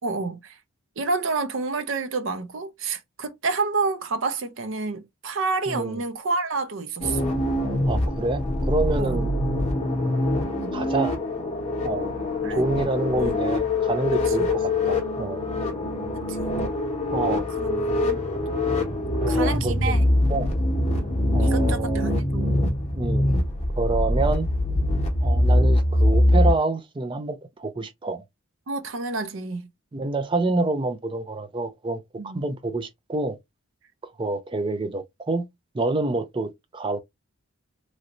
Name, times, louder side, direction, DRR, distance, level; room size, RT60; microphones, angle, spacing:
voice 1, 0.0-0.6 1.0-7.3 9.0-9.2 12.4-12.6 13.2-13.4 14.4-14.5 16.1-16.5 17.6-18.2 19.3-20.0 21.4-22.8 28.7-29.7 32.2-32.4, right 3 dB, 65° right, 0.6 m, -29 dB
voice 2, 5.7-6.0 7.9-9.3 10.7-11.1 11.8-12.1 12.5-15.5 17.1-17.5 19.1-20.0 20.3-20.5 21.3-22.0 23.0-23.3 23.8-24.5 25.2-28.2 29.9-33.4 34.0-35.5 35.7-37.0, right 2 dB, 25° right, 0.3 m, -27 dB
sound 1, 7.0-26.5, left 1 dB, 30° left, 1.0 m, -23 dB
3.1 x 2.5 x 2.9 m
head